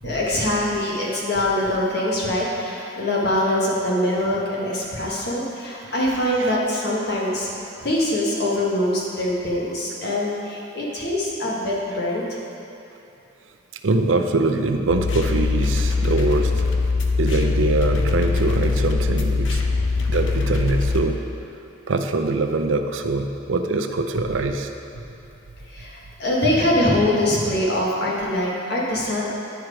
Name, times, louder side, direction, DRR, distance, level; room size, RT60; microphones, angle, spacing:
voice 1, 0.0-7.5 7.8-12.4 25.7-29.3, left 1 dB, 55° left, -4 dB, 1.5 m, -23 dB
voice 2, 13.8-16.5 17.2-19.6 20.1-21.2 21.9-24.7, right 3 dB, 75° right, 6 dB, 0.5 m, -23 dB
sound 1, 14.9-21.0, left 3 dB, 70° left, 0.7 m, -22 dB
10.0 x 4.6 x 4.9 m, 2.8 s
head